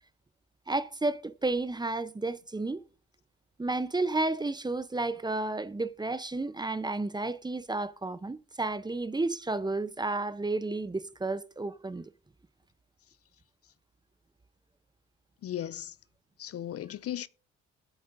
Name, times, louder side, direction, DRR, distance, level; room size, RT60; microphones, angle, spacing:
voice 1, 0.7-2.8 3.6-12.0, right 2 dB, 15° right, 0.7 m, -32 dB
voice 2, 15.4-16.0 16.4-17.3, left 11 dB, 50° left, 0.5 m, -36 dB
20.0 x 8.1 x 2.6 m
cardioid pair, 90°, 30 cm